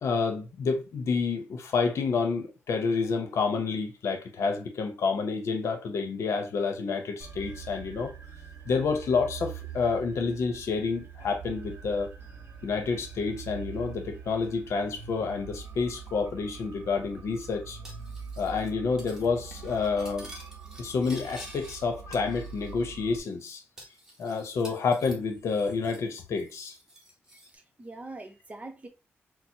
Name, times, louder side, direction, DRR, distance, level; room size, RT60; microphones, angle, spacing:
voice 1, 0.0-8.1 8.7-12.1 12.6-17.8 18.4-20.3 20.8-23.6 24.2-26.8, left 4 dB, 80° left, 0.7 m, -29 dB
sound 1, 7.2-23.2, right 7 dB, 55° right, 0.8 m, -44 dB
Cutlery silverware, 17.8-18.7 19.0-19.3 19.5-21.8 22.1-22.8 23.1-23.2 23.8-26.1 26.4-27.5, equal, 10° right, 1.2 m, -49 dB
voice 2, 27.5-28.9, right 2 dB, 30° right, 0.8 m, -43 dB
4.2 x 2.0 x 2.8 m
cardioid pair, 80°, 5 cm